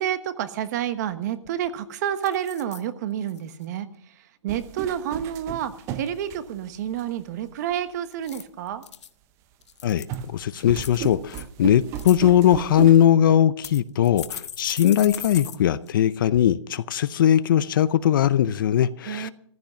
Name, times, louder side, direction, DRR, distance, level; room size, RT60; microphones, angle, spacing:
voice 1, 0.0-3.9 4.4-8.8 19.1-19.3, right 10 dB, 35° right, 1.2 m, -29 dB
sound 1, 1.1-1.2 1.4-1.8 2.2-2.8 3.3-3.6 8.1-9.1 9.6-10.3 10.8-11.4 11.8-12.2 12.9-13.0 13.6-15.6 15.9-16.0 16.3-16.4, left 8 dB, 70° left, 1.1 m, -38 dB
sound 2, 4.5-7.0 7.7-7.8 10.1-13.0, right 9 dB, 20° right, 0.6 m, -35 dB
voice 2, 10.3-19.3, left 10 dB, 45° left, 0.6 m, -20 dB
15.0 x 12.0 x 5.9 m
hypercardioid pair, 155°, 16 cm